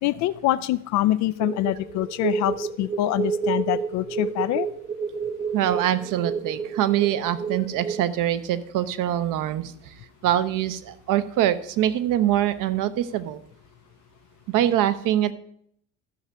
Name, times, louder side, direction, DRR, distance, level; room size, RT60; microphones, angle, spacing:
voice 1, 0.0-4.7, left 14 dB, 40° left, 14 dB, 0.5 m, -25 dB
sound 1, 1.4-8.0, right 6 dB, 15° right, 0.6 m, -30 dB
voice 2, 5.5-9.9 10.2-13.4 14.5-15.3, right 11 dB, 45° right, 12 dB, 0.8 m, -24 dB
13.0 x 6.0 x 5.3 m, 0.68 s
figure-of-eight pair, 60°, 44 cm